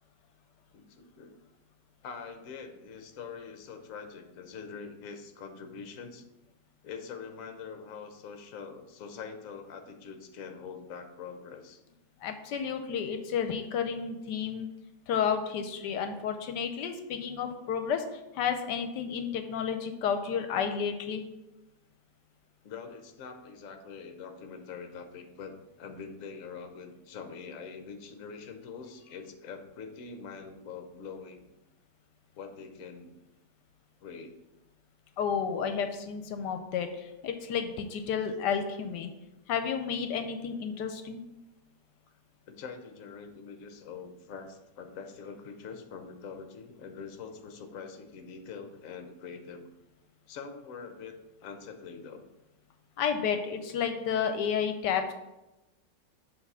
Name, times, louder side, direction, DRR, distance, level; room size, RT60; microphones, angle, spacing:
voice 1, 0.7-1.3 2.0-6.2 6.8-11.8 22.6-31.5 32.3-33.1 34.0-34.4 42.5-49.7 50.3-52.2, left 5 dB, 60° left, 6 dB, 1.0 m, -44 dB
voice 2, 12.2-14.7 15.1-21.2 35.2-39.1 39.5-41.2 53.0-55.1, left 7 dB, 80° left, 7 dB, 1.2 m, -31 dB
7.2 x 3.5 x 5.4 m, 0.99 s
omnidirectional pair, 1.9 m